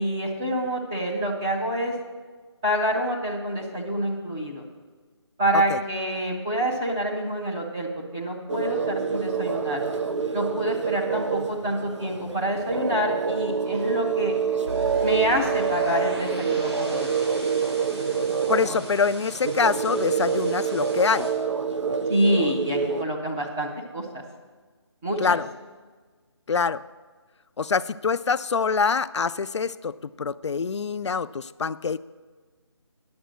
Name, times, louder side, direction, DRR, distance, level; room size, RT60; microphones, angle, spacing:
voice 1, 0.0-1.9 2.6-4.6 5.4-9.8 10.3-14.3 15.0-17.1 22.1-24.2 25.0-25.4, equal, 5° right, -3 dB, 0.4 m, -27 dB
sound 1, 8.5-23.0, right 6 dB, 90° right, 0.8 m, -27 dB
sound 2, 14.7-21.3, right 1 dB, 65° right, 4.0 m, -40 dB
voice 2, 18.5-21.3 25.2-25.5 26.5-26.8 27.6-32.0, left 5 dB, 75° left, 14 dB, 0.4 m, -25 dB
10.5 x 7.2 x 6.3 m, 1.4 s
figure-of-eight pair, 165°, 15 cm